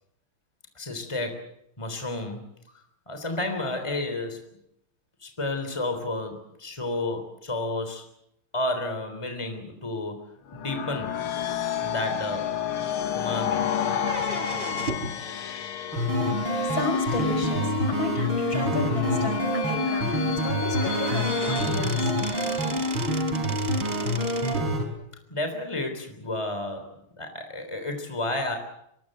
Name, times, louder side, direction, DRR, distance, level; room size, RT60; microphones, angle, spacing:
voice 1, 0.8-1.5 1.8-2.4 3.1-4.4 5.2-8.1 8.5-11.2 11.8-12.6 13.1-13.7 25.3-26.9 27.2-28.6, left 2 dB, 15° left, 6 dB, 3.6 m, -31 dB
sound 1, 10.5-23.0, left 8 dB, 90° left, 2.3 m, -31 dB
sound 2, 14.0-15.2 16.9-17.0 18.0-18.1 18.5-18.6 18.9-19.0 20.3-20.4 20.7-24.7, right 3 dB, 30° right, 2.1 m, -35 dB
sound 3, 15.9-24.9, equal, 75° right, 6.1 m, -27 dB
voice 2, 16.7-22.1, left 2 dB, 65° left, 6 dB, 6.5 m, -33 dB
25.0 x 22.0 x 7.8 m, 0.77 s
omnidirectional pair, 2.3 m